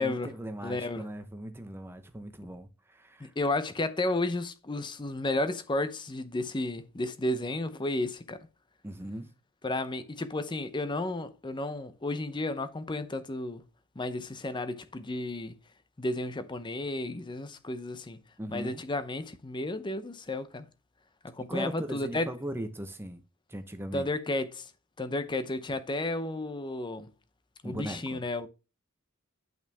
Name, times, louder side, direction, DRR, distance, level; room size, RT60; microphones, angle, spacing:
voice 1, 0.0-3.3 8.8-9.3 18.4-18.8 21.5-23.2 23.5-24.1 27.6-28.2, equal, 10° right, 0.9 m, -38 dB
voice 2, 0.6-1.1 3.2-8.5 9.6-13.6 14.0-15.6 16.0-18.2 18.5-20.6 21.3-22.3 23.9-24.7 25.0-27.1 27.6-28.5, left 2 dB, 20° left, 0.6 m, -32 dB
9.1 x 5.6 x 3.4 m
head